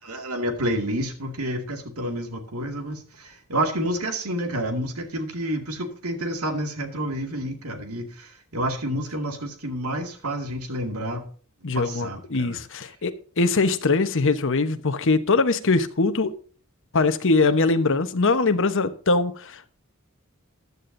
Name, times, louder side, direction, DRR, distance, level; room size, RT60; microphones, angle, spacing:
voice 1, 0.0-11.2 11.7-12.6, right 1 dB, 85° right, 2.3 m, -29 dB
voice 2, 11.6-16.3 16.9-19.7, left 3 dB, 60° left, 1.1 m, -22 dB
15.0 x 11.0 x 2.7 m
head